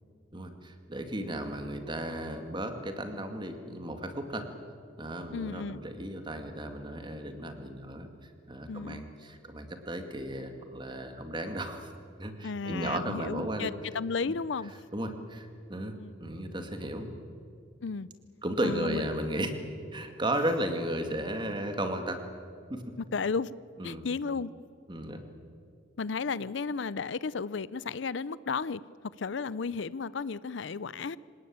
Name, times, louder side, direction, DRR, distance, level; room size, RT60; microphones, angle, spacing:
voice 1, 0.3-4.5 5.0-11.9 12.2-13.7 14.9-17.1 18.4-19.5 19.9-22.2 22.7-22.8 23.8-24.0 24.9-25.2, right 1 dB, 25° right, 6 dB, 2.1 m, -34 dB
voice 2, 5.3-5.8 8.7-9.0 12.4-14.7 15.9-16.1 17.8-18.1 18.6-19.0 23.1-23.5 23.8-24.5 26.0-28.8 29.2-31.2, left 5 dB, 70° left, 19 dB, 0.5 m, -33 dB
26.5 x 18.5 x 8.8 m, 2.4 s
head